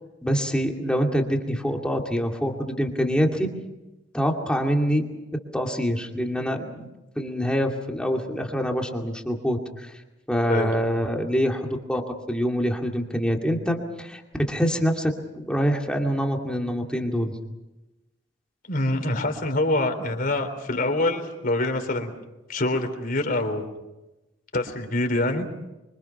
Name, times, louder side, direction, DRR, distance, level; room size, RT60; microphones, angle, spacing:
voice 1, 0.2-3.5 4.1-5.1 5.5-6.9 7.2-9.9 10.3-14.2 14.5-17.3, equal, 5° left, 1 dB, 2.4 m, -25 dB
voice 2, 18.6-22.1 22.5-23.7 24.5-25.5, left 2 dB, 50° left, 5 dB, 3.7 m, -25 dB
25.5 x 25.0 x 5.9 m, 1.0 s
head